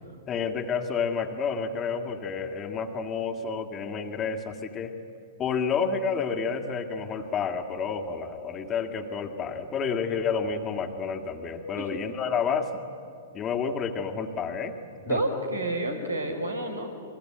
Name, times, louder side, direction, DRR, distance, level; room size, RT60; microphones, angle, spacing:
voice 1, 0.3-4.9 5.4-12.7 13.3-14.8 15.1-15.2, left 6 dB, 25° left, 6 dB, 2.1 m, -30 dB
voice 2, 15.0-17.0, right 1 dB, 85° right, 5 dB, 3.9 m, -29 dB
29.0 x 22.0 x 7.9 m, 2.5 s
figure-of-eight pair, 110°, 0 cm